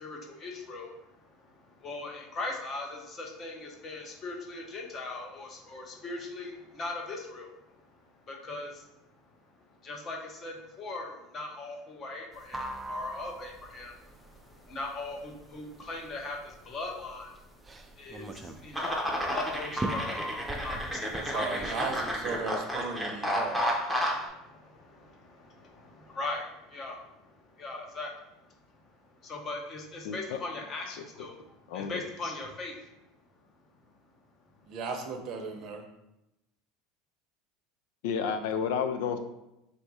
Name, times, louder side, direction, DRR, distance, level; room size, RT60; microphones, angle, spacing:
voice 1, 0.0-21.8 22.8-32.9, left 2 dB, 35° left, 1 dB, 0.8 m, -40 dB
sound 1, 12.3-22.4, right 1 dB, 15° right, 0.3 m, -39 dB
sound 2, 18.7-24.3, equal, ahead, 0.7 m, -32 dB
voice 2, 21.3-23.7 34.7-35.8, right 4 dB, 50° right, 4 dB, 0.7 m, -35 dB
voice 3, 30.0-30.4 30.9-31.0 31.7-32.0 38.0-39.2, left 7 dB, 80° left, 8 dB, 0.4 m, -31 dB
3.5 x 2.7 x 4.6 m, 0.90 s
supercardioid pair, 130°, 0 cm